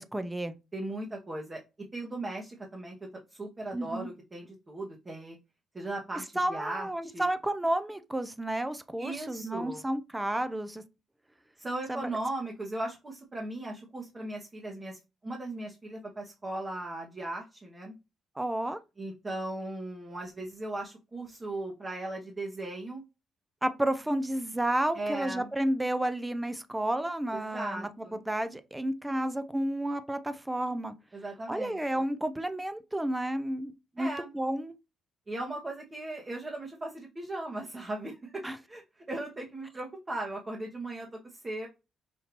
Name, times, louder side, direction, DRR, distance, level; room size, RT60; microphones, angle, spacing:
voice 1, 0.0-0.6 3.7-4.1 6.4-10.8 11.9-12.0 18.4-18.8 23.6-30.9 31.5-34.7 38.4-38.6, right 1 dB, 10° right, 0.6 m, -31 dB
voice 2, 0.7-1.6 1.9-2.9 3.3-5.4 5.7-7.3 9.0-9.8 11.6-17.9 19.0-23.0 24.9-25.5 27.3-28.2 31.1-31.8 34.0-34.3 35.3-38.4 38.7-38.8 39.1-41.1 41.4-41.7, right 2 dB, 25° right, 1.1 m, -37 dB
5.2 x 2.7 x 2.9 m
cardioid pair, 90°, 0 cm